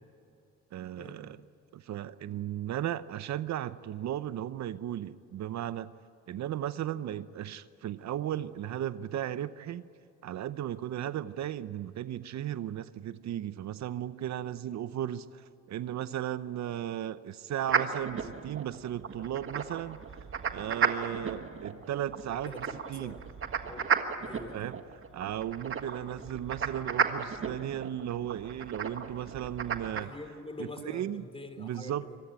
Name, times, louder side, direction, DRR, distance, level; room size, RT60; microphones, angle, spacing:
voice 1, 0.7-1.4 1.7-5.9 6.3-9.9 10.2-20.0 20.5-23.2 24.5-24.8 25.1-30.1 30.6-31.3 31.6-32.1, right 11 dB, 65° right, 14 dB, 0.8 m, -36 dB
sound 1, 17.7-30.0, right 6 dB, 45° right, 1.6 m, -34 dB
voice 2, 22.4-23.2 23.6-23.9 24.2-24.7 26.1-26.3 30.0-32.2, left 2 dB, 20° left, 8 dB, 3.3 m, -45 dB
25.5 x 18.5 x 9.0 m, 2.5 s
cardioid pair, 90°, 30 cm